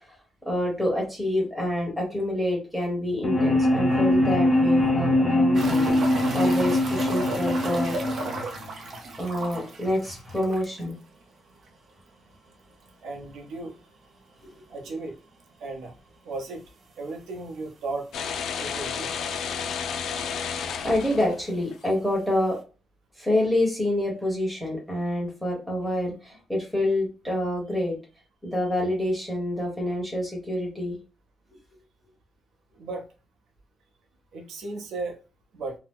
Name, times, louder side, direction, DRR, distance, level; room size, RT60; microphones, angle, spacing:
voice 1, 0.5-5.9 6.3-8.0 9.2-10.9 20.8-22.6 23.2-27.9 28.4-31.0, left 1 dB, ahead, -2 dB, 1.2 m, -27 dB
sound 1, 3.2-9.2, left 1 dB, 15° left, 0.7 m, -23 dB
sound 2, 5.5-10.9 11.2-11.3 11.7-11.8 14.5-14.6 16.3-16.4 17.2-17.3 17.5-17.6 18.5-18.6 18.8-19.4 20.4-20.5, right 2 dB, 50° right, 0.5 m, -34 dB
voice 2, 13.0-13.7 14.7-15.2 15.6-15.9 16.2-16.6 17.0-18.1 18.6-19.1 32.8-33.0 34.3-35.2 35.5-35.8, right 3 dB, 80° right, 1 dB, 0.8 m, -35 dB
sound 3, 18.1-21.7, left 6 dB, 80° left, 0.4 m, -31 dB
2.8 x 2.1 x 3.4 m, 0.32 s
cardioid pair, 175°, 0 cm